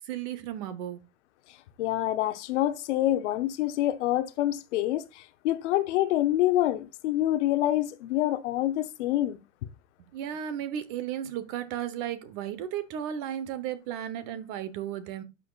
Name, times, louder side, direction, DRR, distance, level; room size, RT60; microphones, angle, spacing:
voice 1, 0.1-1.0 10.1-15.2, right 10 dB, 45° right, 1.1 m, -34 dB
voice 2, 1.8-9.4, left 14 dB, 65° left, 0.9 m, -26 dB
11.5 x 6.2 x 2.4 m
supercardioid pair, 145°, 38 cm